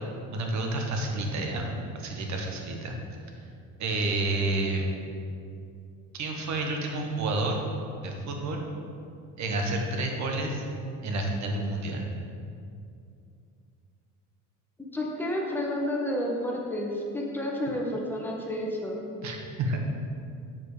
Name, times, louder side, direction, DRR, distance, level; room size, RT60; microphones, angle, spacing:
voice 1, 0.3-1.7 1.9-3.0 3.8-4.8 6.1-7.6 8.0-8.6 9.4-10.6 11.0-12.1 19.2-19.8, right 2 dB, 55° right, 2 dB, 1.3 m, -29 dB
voice 2, 14.9-19.0, left 1 dB, 5° left, -2 dB, 1.4 m, -30 dB
7.4 x 5.0 x 5.0 m, 2.5 s
cardioid pair, 105°, 34 cm